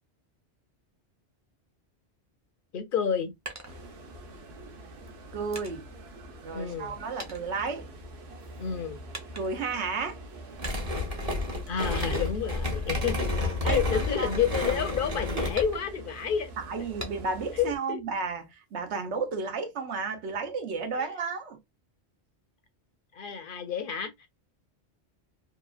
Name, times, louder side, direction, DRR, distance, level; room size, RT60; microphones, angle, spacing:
voice 1, 2.7-3.3 6.5-6.9 8.6-9.0 11.7-13.3 13.6-16.5 17.5-18.0 21.0-21.1 23.1-24.3, left 7 dB, 60° left, 0.6 m, -30 dB
sound 1, 2.9-4.4 5.1-6.9 7.2-8.4 9.1-9.8 10.6-11.1 11.6-11.8 12.3-12.4 12.8-13.0 13.6-14.8 15.6-16.2 17.0-17.5 17.9-18.8, equal, 20° right, 0.5 m, -42 dB
sound 2, 3.6-17.8, right 1 dB, 70° right, 1.0 m, -45 dB
voice 2, 5.3-5.8 6.4-7.9 9.3-10.2 13.6-14.3 16.6-21.6, right 4 dB, 85° right, 1.0 m, -32 dB
sound 3, 10.6-15.8, left 2 dB, 35° right, 0.9 m, -30 dB
2.9 x 2.5 x 2.3 m
omnidirectional pair, 1.1 m